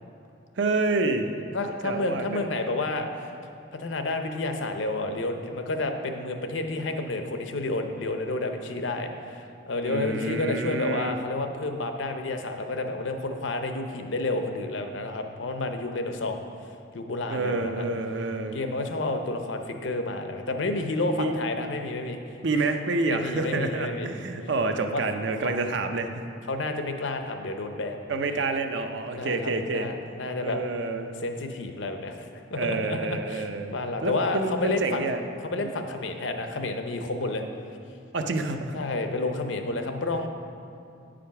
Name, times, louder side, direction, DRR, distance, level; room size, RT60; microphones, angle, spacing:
voice 1, 0.6-1.3 1.8-2.4 9.8-11.2 17.3-18.6 21.2-21.3 22.4-26.2 28.1-29.9 30.4-31.2 32.6-35.2 35.5-35.9 38.1-38.7, right 3 dB, 75° right, 6 dB, 0.6 m, -28 dB
voice 2, 1.5-3.1 3.7-16.4 16.9-17.9 18.5-22.2 23.1-24.1 24.9-25.0 25.4-25.6 26.5-28.0 29.1-30.6 31.2-35.0 35.4-37.4 38.7-40.3, left 2 dB, 85° left, 6 dB, 0.7 m, -30 dB
8.6 x 5.1 x 5.7 m, 2.6 s
head